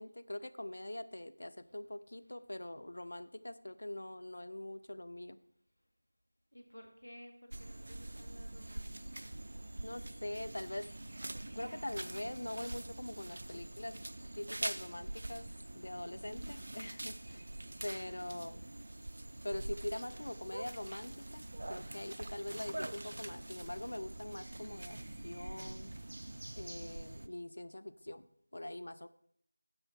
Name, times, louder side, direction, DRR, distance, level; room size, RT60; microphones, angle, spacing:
voice 1, 0.0-5.4 9.8-10.9 11.5-13.9 14.3-15.5 15.7-17.4 17.8-18.7 19.4-21.4 21.7-25.0 25.2-25.9 26.6-28.2 28.5-29.1, left 1 dB, 55° left, 12 dB, 0.6 m, -43 dB
voice 2, 6.5-9.5 14.3-14.9 17.2-17.8 28.0-28.2, equal, 85° left, 3 dB, 2.2 m, -57 dB
sound 1, 7.5-27.3, right 1 dB, 45° right, 0.4 m, -45 dB
sound 2, 18.4-22.7 23.0-24.2, right 1 dB, 30° right, 1.0 m, -66 dB
9.8 x 6.7 x 4.5 m, 0.68 s
figure-of-eight pair, 170°, 0 cm